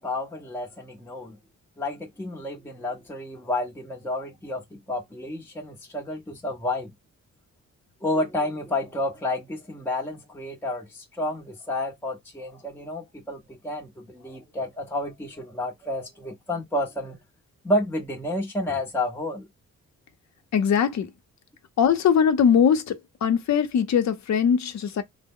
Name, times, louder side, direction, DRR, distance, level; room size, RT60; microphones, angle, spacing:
voice 1, 0.0-1.4 1.8-6.9 8.0-17.2 17.6-19.5, left 1 dB, 5° left, 0.7 m, -30 dB
voice 2, 20.5-21.1 21.8-23.0 23.2-25.0, left 7 dB, 65° left, 0.7 m, -21 dB
3.3 x 2.1 x 3.6 m
cardioid pair, 110°, 31 cm